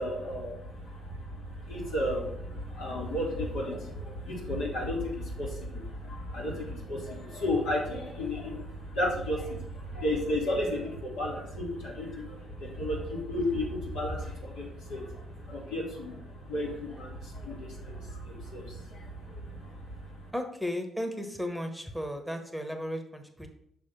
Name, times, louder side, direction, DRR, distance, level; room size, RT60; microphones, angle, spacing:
voice 1, 0.0-20.3, left 1 dB, 75° left, -3 dB, 2.2 m, -34 dB
voice 2, 20.3-23.5, equal, ahead, 5 dB, 1.1 m, -35 dB
6.1 x 3.4 x 5.6 m, 0.74 s
hypercardioid pair, 50°, 0 cm